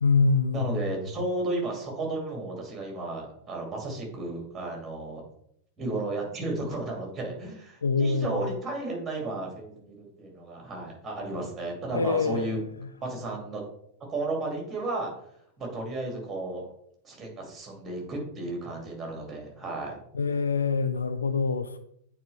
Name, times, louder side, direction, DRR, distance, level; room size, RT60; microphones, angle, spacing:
voice 1, 0.0-0.8 7.8-8.4 11.9-12.5 20.1-21.8, left 4 dB, 75° left, 0.4 m, -25 dB
voice 2, 0.5-5.2 5.8-12.6 13.0-13.6 14.1-15.1 15.6-16.7 17.0-20.0, right 2 dB, 15° right, 2.4 m, -33 dB
8.6 x 4.3 x 3.3 m
figure-of-eight pair, 90°, 0 cm